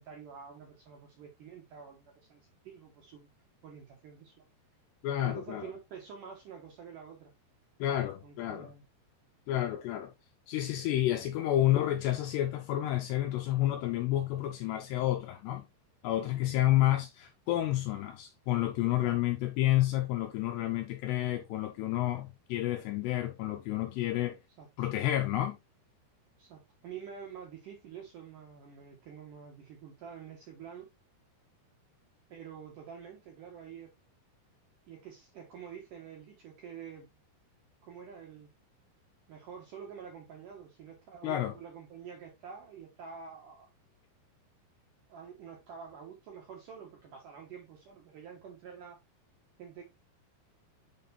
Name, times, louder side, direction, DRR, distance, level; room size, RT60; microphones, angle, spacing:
voice 1, 0.0-3.3 3.6-4.5 5.2-7.3 8.2-8.8 19.0-19.2 24.6-24.7 26.4-30.9 32.3-33.9 34.9-37.1 37.8-38.5 39.3-43.7 45.1-49.0 49.6-49.8, right 7 dB, 65° right, 2.1 m, -48 dB
voice 2, 5.0-5.7 7.8-8.7 9.5-10.1 10.5-15.7 16.0-24.4 24.8-25.6 41.2-41.5, left 14 dB, 90° left, 2.4 m, -30 dB
7.6 x 5.2 x 2.7 m
omnidirectional pair, 5.5 m